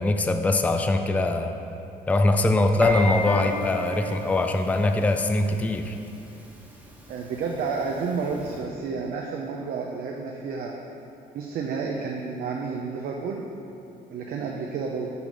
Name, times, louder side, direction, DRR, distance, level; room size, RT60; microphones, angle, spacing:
voice 1, 0.0-1.5 2.1-6.0, left 2 dB, 10° left, 6 dB, 0.4 m, -22 dB
Piano, 2.8-8.7, left 1 dB, 10° right, 1.2 m, -37 dB
Piano 2, 3.3-5.2, left 2 dB, 30° left, 1.1 m, -35 dB
voice 2, 7.1-10.8 11.3-13.4 14.1-15.1, right 5 dB, 60° right, 0 dB, 0.6 m, -30 dB
6.9 x 4.9 x 5.3 m, 2.7 s
cardioid pair, 110°, 17 cm